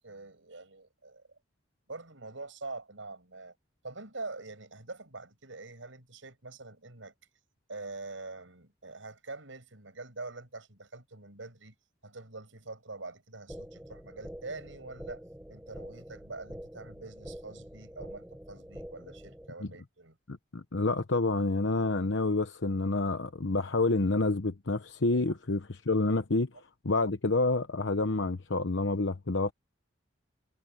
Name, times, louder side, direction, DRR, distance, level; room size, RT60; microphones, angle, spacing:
voice 1, 0.0-1.4 1.9-3.5 3.8-7.1 7.7-11.7 12.0-15.2 15.5-20.2, right 3 dB, 85° right, 5.9 m, -44 dB
sound 1, 13.5-19.5, equal, 5° right, 0.7 m, -46 dB
voice 2, 20.3-26.5 26.8-29.5, left 2 dB, 75° left, 1.0 m, -28 dB
head